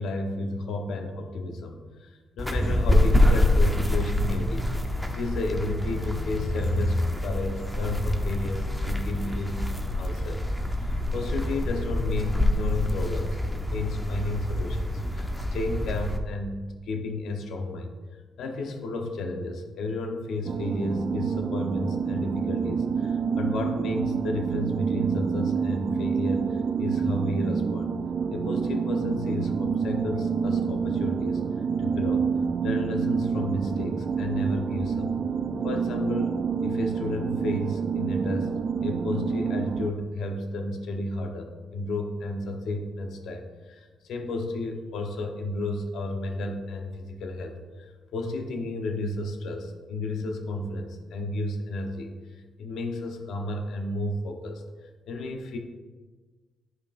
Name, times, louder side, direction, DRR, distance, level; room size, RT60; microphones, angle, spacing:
voice 1, 0.0-4.7 5.1-10.4 10.8-17.9 18.4-27.9 28.3-31.4 31.8-32.2 32.6-35.1 35.6-52.2 52.6-55.6, left 2 dB, 75° left, 4 dB, 1.0 m, -32 dB
sound 1, 2.4-16.2, left 1 dB, 5° left, 0.8 m, -26 dB
sound 2, 20.5-39.9, right 6 dB, 50° right, 0.3 m, -28 dB
11.0 x 5.3 x 2.6 m, 1.4 s
cardioid pair, 90°, 0 cm